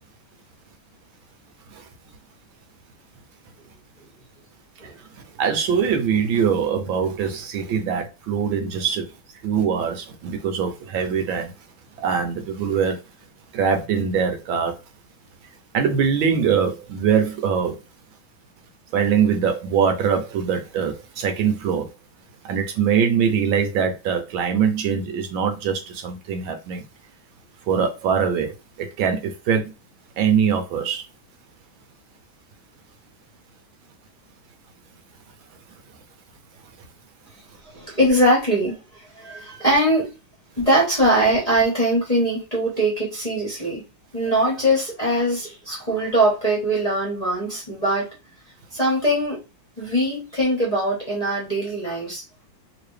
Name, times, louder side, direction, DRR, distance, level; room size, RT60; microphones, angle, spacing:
voice 1, 5.4-9.1 9.4-11.5 12.0-13.0 13.5-14.7 15.7-17.8 18.9-21.9 22.4-26.8 27.7-29.7 30.2-31.0, right 7 dB, 75° right, 1.4 m, -22 dB
voice 2, 37.7-40.1 40.6-43.8 44.1-48.1 48.7-49.4 49.8-52.2, right 1 dB, 25° left, 1.0 m, -21 dB
3.3 x 2.9 x 3.2 m
omnidirectional pair, 2.3 m